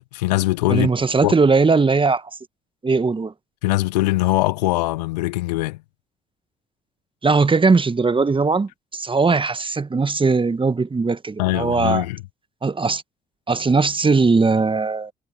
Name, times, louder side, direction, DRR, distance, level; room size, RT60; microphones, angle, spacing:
voice 1, 0.1-0.9 1.2-1.3 3.6-5.8 11.4-12.2, left 20 dB, 75° left, 1.1 m, -21 dB
voice 2, 0.7-2.3 2.8-3.3 7.2-12.0 12.6-13.0 13.5-15.1, right 4 dB, 25° right, 1.5 m, -19 dB
figure-of-eight pair, 45°, 21 cm